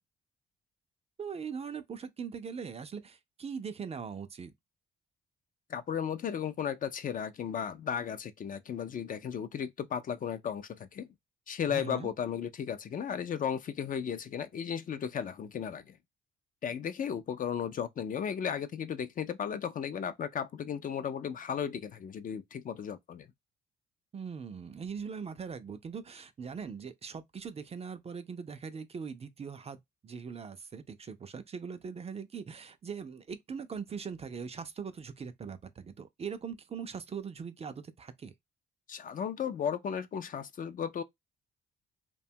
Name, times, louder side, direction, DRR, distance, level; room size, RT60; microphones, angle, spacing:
voice 1, 1.2-4.5 11.7-12.1 24.1-38.3, right 6 dB, 30° right, 0.4 m, -41 dB
voice 2, 5.7-11.1 11.5-16.0 16.6-23.3 38.9-41.0, left 8 dB, 45° left, 0.4 m, -35 dB
2.7 x 2.2 x 2.6 m
cardioid pair, 90°, 20 cm